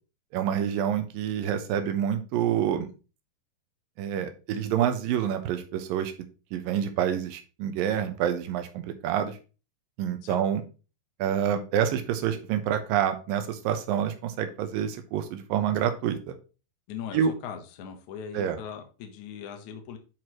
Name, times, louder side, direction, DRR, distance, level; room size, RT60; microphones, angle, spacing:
voice 1, 0.3-2.9 4.0-6.1 6.5-9.4 10.0-10.6 11.2-16.4 17.1-17.3 18.3-18.6, right 9 dB, 75° right, 7 dB, 2.3 m, -27 dB
voice 2, 16.9-20.0, left 7 dB, 70° left, 5 dB, 1.9 m, -40 dB
10.5 x 4.6 x 3.1 m, 0.33 s
omnidirectional pair, 4.8 m